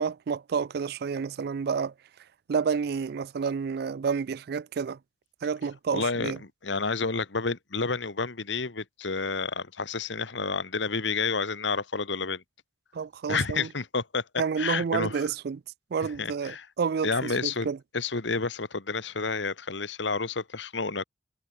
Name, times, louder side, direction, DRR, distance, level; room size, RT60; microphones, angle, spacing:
voice 1, 0.0-1.9 2.5-5.0 5.4-6.4 12.9-13.7 14.4-15.6 15.9-17.8, right 6 dB, 55° right, 0.4 m, -29 dB
voice 2, 5.9-12.4 13.3-14.2 14.6-15.3 16.0-16.7 17.0-17.7 17.9-21.0, left 4 dB, 75° left, 1.5 m, -30 dB
head